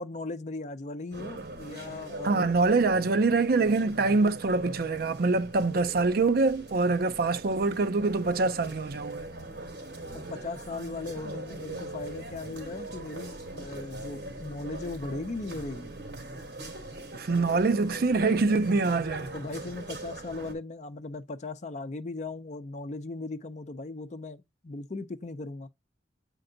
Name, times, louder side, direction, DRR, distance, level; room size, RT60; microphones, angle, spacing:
voice 1, 0.0-2.5 10.1-15.9 19.3-25.7, left 3 dB, 40° left, 0.6 m, -38 dB
sound 1, 1.1-20.5, right 2 dB, 75° right, 3.2 m, -41 dB
voice 2, 2.2-9.3 17.1-19.3, right 3 dB, 55° right, 0.5 m, -25 dB
7.8 x 4.6 x 3.9 m
head